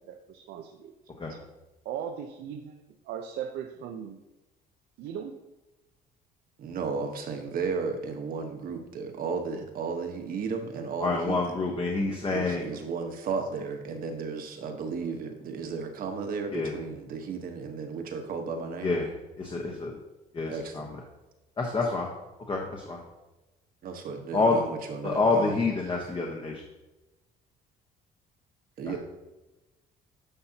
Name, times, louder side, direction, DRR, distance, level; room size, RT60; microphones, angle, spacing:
voice 1, 0.1-0.9 1.8-4.2 5.0-5.3, right 8 dB, 80° right, 4 dB, 0.7 m, -38 dB
voice 2, 6.6-11.5 12.3-18.9 20.5-20.9 23.8-25.5 28.8-29.0, right 5 dB, 60° right, 5 dB, 1.3 m, -34 dB
voice 3, 11.0-12.7 16.5-16.7 18.8-19.1 19.4-19.9 20.3-21.0 21.6-22.1 22.5-23.0 24.3-24.6 25.0-26.6 28.8-29.0, left 3 dB, 30° left, 0 dB, 1.2 m, -27 dB
10.5 x 5.7 x 2.9 m, 1.0 s
cardioid pair, 110°, 17 cm